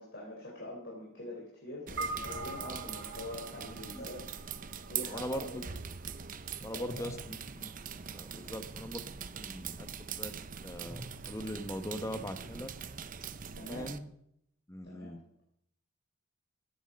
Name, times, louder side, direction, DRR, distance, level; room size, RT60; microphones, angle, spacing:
voice 1, 0.0-4.3 4.9-5.7 6.7-7.2 8.3-8.5 13.5-13.9 14.8-15.2, left 1 dB, 50° left, -3 dB, 4.2 m, -44 dB
sound 1, 1.9-14.0, right 7 dB, 35° right, 0.7 m, -42 dB
sound 2, 2.0-6.5, right 2 dB, 55° right, 3.6 m, -43 dB
voice 2, 5.1-5.6 6.6-7.7 8.1-9.0 9.4-9.9 10.2-10.3 10.6-11.0 11.3-12.7 13.7-14.1 14.7-15.2, equal, 15° left, 9 dB, 1.2 m, -40 dB
sound 3, 6.8-13.1, equal, 10° right, 3.8 m, -52 dB
16.5 x 12.0 x 5.3 m, 0.73 s
head